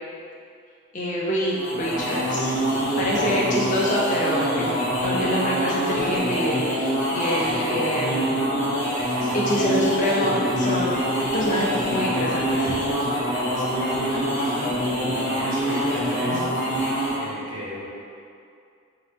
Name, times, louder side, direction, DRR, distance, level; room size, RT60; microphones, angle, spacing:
voice 1, 0.9-2.5 3.0-8.2 9.3-11.0 11.3-12.7, equal, 35° left, -5 dB, 0.7 m, -26 dB
sound 1, 1.5-17.3, equal, 60° left, 1.5 m, -25 dB
voice 2, 2.9-3.8 9.0-9.5 13.5-14.8 15.2-17.9, equal, 65° right, -8 dB, 1.3 m, -35 dB
3.9 x 2.8 x 4.1 m, 2.4 s
head